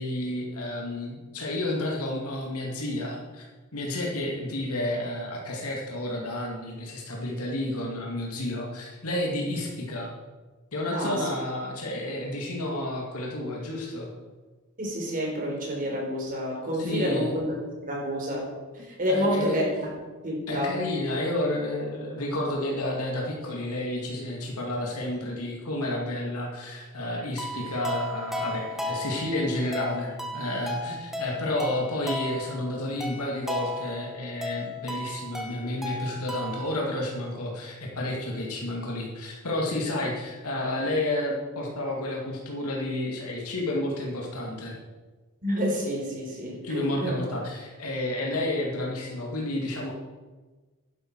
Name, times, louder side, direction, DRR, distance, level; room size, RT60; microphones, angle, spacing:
voice 1, 0.0-3.5 3.7-10.1 10.7-14.1 16.8-17.3 19.1-19.6 20.5-44.8 46.6-49.9, left 1 dB, 75° left, -1 dB, 2.4 m, -31 dB
voice 2, 10.9-11.3 14.8-17.6 17.9-18.5 18.7-19.9 20.2-20.8 45.4-47.1, equal, 40° right, -2 dB, 4.3 m, -28 dB
sound 1, 27.4-36.8, left 1 dB, ahead, 1.4 m, -35 dB
11.5 x 11.0 x 4.8 m, 1.3 s
head